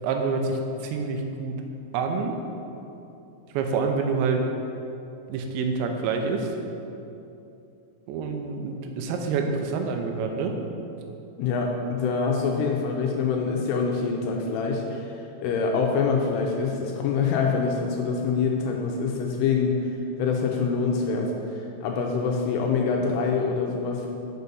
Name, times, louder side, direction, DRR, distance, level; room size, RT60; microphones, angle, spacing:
voice 1, 0.0-0.6 0.8-1.6 1.9-2.4 3.5-4.4 5.3-6.5 8.1-10.5, right 5 dB, 90° right, 4 dB, 3.0 m, -27 dB
voice 2, 11.4-15.1 15.4-19.9 20.2-21.3 21.8-24.1, left 5 dB, 80° left, 1 dB, 2.5 m, -25 dB
6.7 x 5.8 x 5.4 m, 2.8 s
omnidirectional pair, 5.1 m